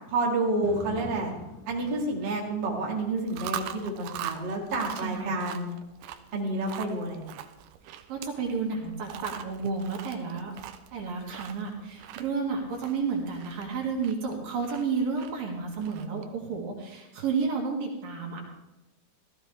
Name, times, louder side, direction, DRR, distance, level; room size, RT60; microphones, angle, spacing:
voice 1, 0.1-1.3 1.7-5.8 6.3-7.4, right 2 dB, 35° right, -2 dB, 2.2 m, -29 dB
sound 1, 0.6-8.8 9.3-9.4, left 3 dB, 50° left, 2.7 m, -47 dB
Chewing mastication, 3.2-16.4, right 11 dB, 80° right, 2.5 m, -42 dB
voice 2, 5.0-5.3 8.1-10.5 10.9-18.5, right 5 dB, 60° right, -1 dB, 3.7 m, -31 dB
17.0 x 14.0 x 3.5 m, 1.0 s
omnidirectional pair, 5.0 m